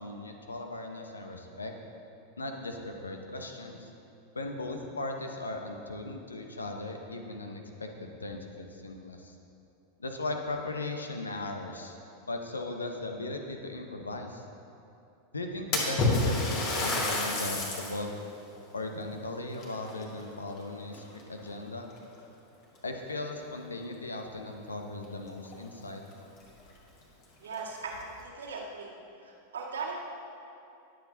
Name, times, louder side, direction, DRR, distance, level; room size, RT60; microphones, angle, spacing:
voice 1, 0.0-1.7 2.4-3.9 4.3-9.3 10.0-12.0 12.3-14.4 15.3-18.2 18.7-21.9 22.8-26.0, left 2 dB, 75° left, 4 dB, 1.0 m, -38 dB
Splash splatter, 15.7-18.0 18.5-18.6 19.5-20.6 20.9-21.4 22.2-22.3 22.8-22.9 25.0-25.1 25.4-25.5 26.1-26.2 26.6-26.7 27.4-28.0, left 2 dB, 40° left, 2.0 m, -29 dB
voice 2, 27.4-28.9 29.2-30.0, right 4 dB, 70° right, -2 dB, 1.9 m, -38 dB
21.5 x 7.7 x 2.8 m, 2.7 s
figure-of-eight pair, 90°, 0 cm